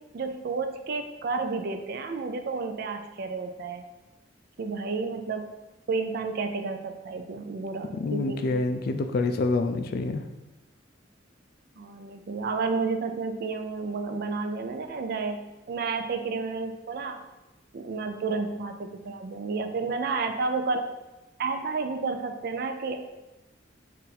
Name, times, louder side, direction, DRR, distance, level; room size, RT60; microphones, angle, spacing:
voice 1, 0.1-3.8 4.6-5.5 5.9-8.6 11.8-17.2 17.7-20.9 21.4-23.0, right 4 dB, 55° right, 6 dB, 0.4 m, -31 dB
voice 2, 7.9-10.2, left 3 dB, 50° left, 7 dB, 0.3 m, -27 dB
4.0 x 2.5 x 4.1 m, 1.0 s
head